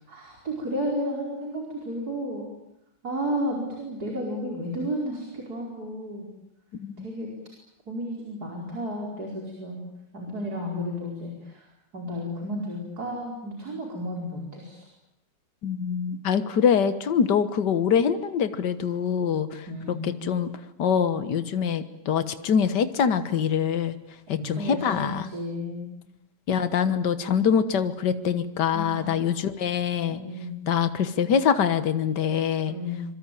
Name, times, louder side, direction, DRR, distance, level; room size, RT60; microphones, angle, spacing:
voice 1, 0.1-2.5 3.0-6.3 7.0-7.3 7.9-9.9 10.1-11.7 11.9-14.9 19.7-20.2 24.3-25.9 28.7-29.2 30.1-30.6 32.7-33.1, equal, 55° right, 0 dB, 5.5 m, -32 dB
voice 2, 15.6-19.7 20.0-20.5 20.8-24.0 24.3-25.3 26.5-30.2 30.7-32.7, left 7 dB, 70° left, 11 dB, 1.9 m, -24 dB
26.0 x 23.5 x 9.1 m, 0.84 s
omnidirectional pair, 1.9 m